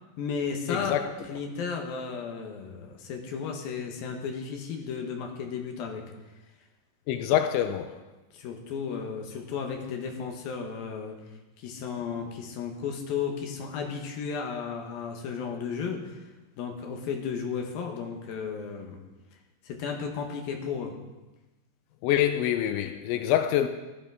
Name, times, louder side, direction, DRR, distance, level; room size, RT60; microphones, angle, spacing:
voice 1, 0.2-6.1 8.3-11.2 11.6-16.2 16.6-19.0 19.7-21.0, left 6 dB, 65° left, 2.5 m, -34 dB
voice 2, 0.7-1.0 7.1-7.9 22.0-23.7, left 11 dB, 85° left, 2.9 m, -25 dB
15.0 x 12.0 x 3.6 m
omnidirectional pair, 5.4 m